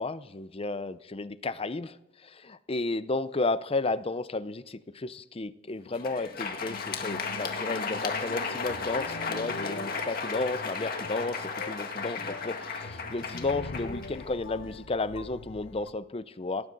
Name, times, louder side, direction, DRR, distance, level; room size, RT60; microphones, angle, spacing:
voice 1, 0.0-2.0 2.2-16.7, left 3 dB, 30° left, 15 dB, 0.6 m, -33 dB
Crowd, 5.8-14.8, left 4 dB, 50° left, 2.0 m, -35 dB
sound 1, 6.7-15.9, left 2 dB, 70° left, 1.0 m, -43 dB
18.5 x 18.5 x 4.0 m, 0.91 s
head